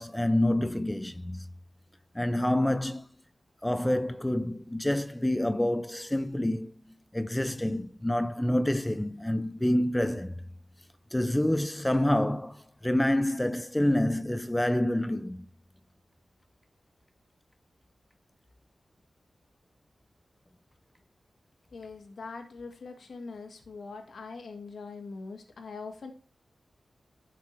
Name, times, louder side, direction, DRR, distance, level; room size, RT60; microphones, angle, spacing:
voice 1, 0.0-1.5 2.1-3.1 3.6-6.7 7.1-10.3 11.1-15.5, left 1 dB, 10° left, 0.6 m, -27 dB
voice 2, 21.7-26.1, left 4 dB, 80° left, 1.8 m, -42 dB
13.0 x 5.9 x 4.6 m
cardioid pair, 70°, 0 cm